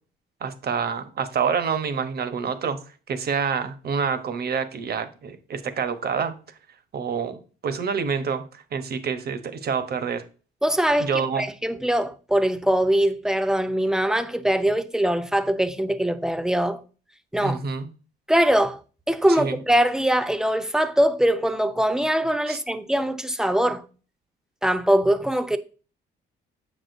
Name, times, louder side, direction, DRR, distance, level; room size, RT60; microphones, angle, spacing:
voice 1, 0.4-2.8 3.1-6.3 6.9-10.2 11.0-11.5 17.4-17.9 19.4-19.6 22.5-22.6, right 6 dB, 55° right, 0.9 m, -27 dB
voice 2, 10.6-11.1 11.4-16.8 17.3-17.6 18.3-18.8 19.1-23.8 24.6-25.6, right 1 dB, 5° right, 0.6 m, -22 dB
7.3 x 6.3 x 2.6 m
cardioid pair, 90°, 20 cm